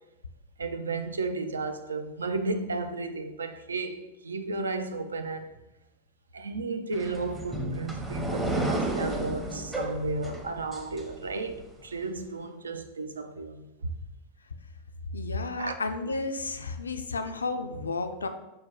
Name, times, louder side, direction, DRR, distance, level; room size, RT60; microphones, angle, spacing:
voice 1, 0.6-5.5 6.3-13.9 15.6-15.7, right 3 dB, 75° right, 0.3 m, -33 dB
sound 1, 6.9-11.6, right 1 dB, 15° right, 0.7 m, -32 dB
voice 2, 15.1-18.3, left 3 dB, 75° left, 0.4 m, -32 dB
5.7 x 2.2 x 3.7 m
figure-of-eight pair, 90°, 0 cm